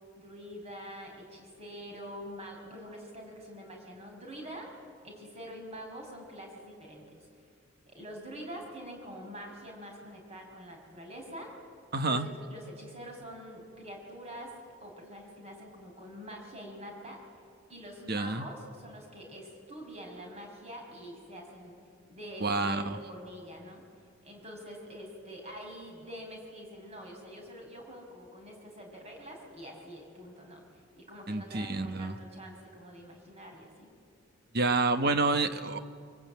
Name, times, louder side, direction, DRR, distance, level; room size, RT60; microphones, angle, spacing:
voice 1, 0.2-4.7 5.0-7.2 7.8-11.5 12.0-14.5 14.8-17.2 17.7-21.7 22.1-23.8 24.2-30.6 31.0-33.9, equal, 30° right, 1 dB, 5.8 m, -45 dB
voice 2, 11.9-12.3 18.1-18.5 22.4-23.0 31.3-32.2 34.5-35.8, right 3 dB, 50° right, 9 dB, 1.2 m, -28 dB
24.0 x 23.5 x 9.2 m, 2.2 s
head